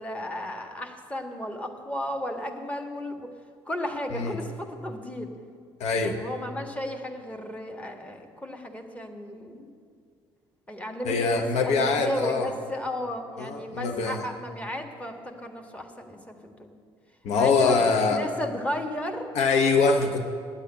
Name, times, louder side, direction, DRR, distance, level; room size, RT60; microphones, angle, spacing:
voice 1, 0.0-3.3 3.6-5.3 5.9-9.7 10.7-16.7 17.3-19.3, left 1 dB, 10° left, 3 dB, 1.6 m, -34 dB
voice 2, 5.8-6.2 11.0-12.5 13.4-14.2 17.2-18.2 19.3-20.2, left 4 dB, 55° left, 5 dB, 0.9 m, -23 dB
9.6 x 8.2 x 9.6 m, 2.2 s
figure-of-eight pair, 55°, 13 cm